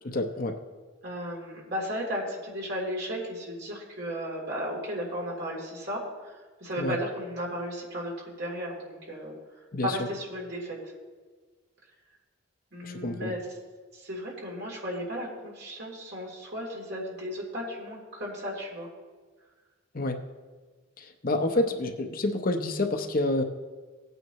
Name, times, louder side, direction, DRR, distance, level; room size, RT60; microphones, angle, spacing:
voice 1, 0.0-0.6 6.8-7.0 9.7-10.1 12.8-13.4 19.9-20.2 21.0-23.4, left 2 dB, 40° left, 6 dB, 0.7 m, -28 dB
voice 2, 1.0-6.0 6.6-9.3 9.8-10.8 12.7-13.4 13.9-18.9, equal, 50° right, -3 dB, 3.3 m, -34 dB
18.0 x 9.1 x 3.1 m, 1.4 s
head